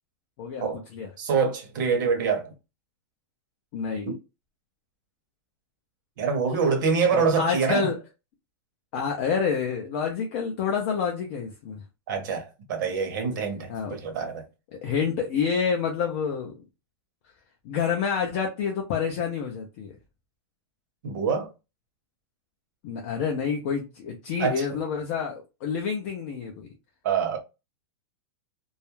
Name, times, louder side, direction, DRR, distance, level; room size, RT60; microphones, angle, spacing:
voice 1, 0.4-1.1 3.7-4.1 7.1-8.0 8.9-11.8 13.7-14.0 14.7-16.6 17.6-19.9 22.8-26.7, left 6 dB, 30° left, 0.4 m, -28 dB
voice 2, 1.2-2.5 4.1-4.2 6.2-7.9 12.1-14.4 21.0-21.5 24.4-24.6 27.0-27.4, right 5 dB, 50° right, 0.7 m, -25 dB
2.2 x 2.0 x 3.0 m
supercardioid pair, 180°, 14 cm